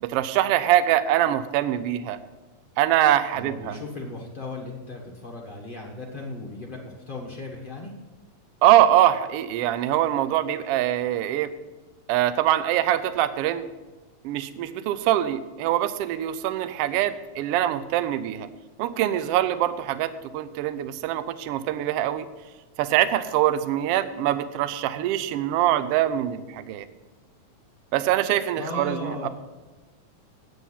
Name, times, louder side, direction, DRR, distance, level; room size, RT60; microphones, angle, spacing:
voice 1, 0.0-2.2 2.8-3.8 8.6-11.5 12.1-13.7 14.2-18.5 18.8-22.3 22.8-26.8 27.9-29.3, right 12 dB, 90° right, 13 dB, 1.3 m, -23 dB
voice 2, 3.3-7.9 28.6-29.3, left 2 dB, 55° left, -2 dB, 0.5 m, -36 dB
9.3 x 8.8 x 5.6 m, 1.2 s
omnidirectional pair, 3.4 m